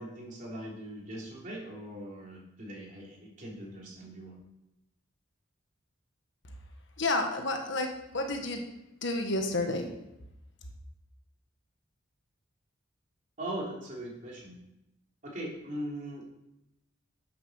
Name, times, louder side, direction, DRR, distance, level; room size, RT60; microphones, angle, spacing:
voice 1, 0.0-4.4 13.4-14.5 15.2-16.4, right 1 dB, 40° right, -3 dB, 3.4 m, -40 dB
voice 2, 7.0-8.6 9.0-9.9, left 2 dB, 65° left, 4 dB, 1.6 m, -30 dB
9.6 x 7.1 x 6.6 m, 0.89 s
head